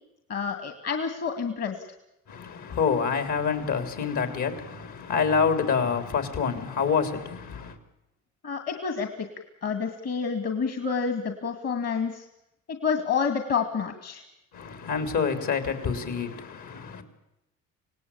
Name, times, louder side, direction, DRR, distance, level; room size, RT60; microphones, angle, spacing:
voice 1, 0.3-1.8 8.4-9.3 9.6-12.3 12.7-14.2, left 6 dB, 55° left, 2.3 m, -28 dB
voice 2, 2.3-7.8 14.5-17.0, left 6 dB, 75° left, 3.7 m, -27 dB
26.0 x 18.5 x 8.7 m
cardioid pair, 90°, 30 cm